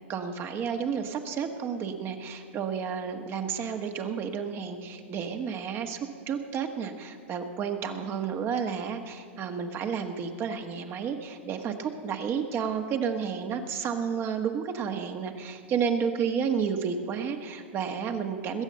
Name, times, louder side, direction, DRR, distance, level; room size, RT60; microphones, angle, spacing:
voice 1, 0.1-6.0 6.3-18.6, right 6 dB, 35° right, 6 dB, 1.5 m, -31 dB
20.5 x 8.2 x 7.7 m, 2.1 s
hypercardioid pair, 100°, 7 cm